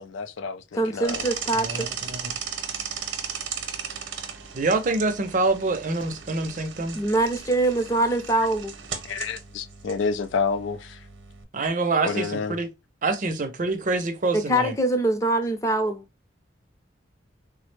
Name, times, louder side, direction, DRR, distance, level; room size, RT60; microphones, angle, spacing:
voice 1, 0.0-1.2 9.0-11.0 12.0-12.6, left 5 dB, 80° left, 0.4 m, -29 dB
voice 2, 0.7-1.9 6.9-8.7 14.3-16.1, right 1 dB, 15° left, 0.5 m, -23 dB
sound 1, 1.0-11.4, right 7 dB, 85° right, 0.8 m, -36 dB
voice 3, 1.5-2.2 4.5-7.0 11.5-12.7 13.0-14.7, right 3 dB, 40° right, 0.5 m, -26 dB
3.4 x 2.0 x 3.1 m
head